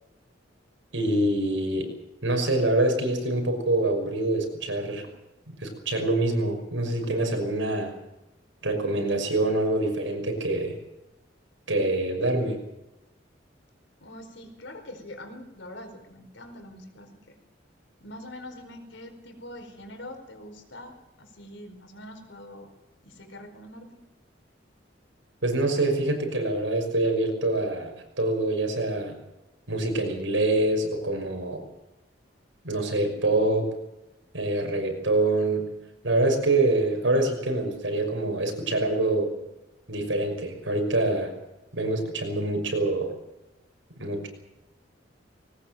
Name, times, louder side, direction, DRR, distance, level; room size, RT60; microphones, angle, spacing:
voice 1, 0.9-1.9 2.2-5.1 5.6-7.9 8.6-10.8 11.7-12.6 25.4-29.1 29.7-31.6 32.6-33.7 34.3-35.7 36.0-39.3 39.9-41.3 41.7-43.1 44.0-44.3, right 2 dB, 85° right, 4 dB, 5.9 m, -25 dB
voice 2, 14.0-17.3 18.0-22.7 23.0-24.0, left 1 dB, 75° left, 6 dB, 4.8 m, -44 dB
21.0 x 19.0 x 7.8 m, 0.96 s
head